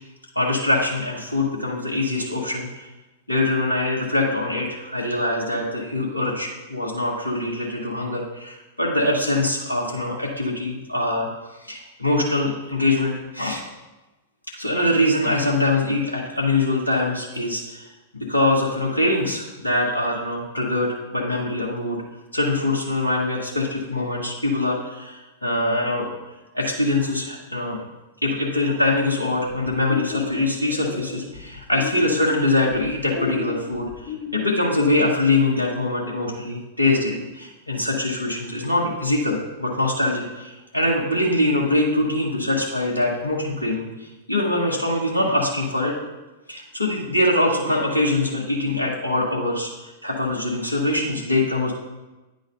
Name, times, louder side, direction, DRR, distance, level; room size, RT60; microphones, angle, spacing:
voice 1, 0.3-2.9 3.3-11.3 11.6-13.6 14.6-17.9 18.1-22.0 22.3-26.1 26.5-27.8 28.2-46.0 46.5-51.7, left 2 dB, 85° left, -3 dB, 1.3 m, -23 dB
sound 1, 29.5-34.5, left 6 dB, 35° left, 1.1 m, -33 dB
9.6 x 3.9 x 5.5 m, 1.1 s
figure-of-eight pair, 100°, 0 cm